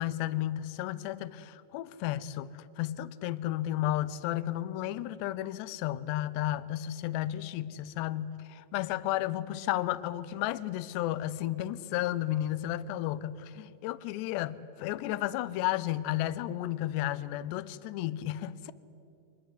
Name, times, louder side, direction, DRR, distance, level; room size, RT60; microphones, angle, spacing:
voice 1, 0.0-18.7, left 14 dB, 80° left, 16 dB, 2.8 m, -33 dB
24.5 x 21.0 x 9.7 m, 2.8 s
omnidirectional pair, 5.1 m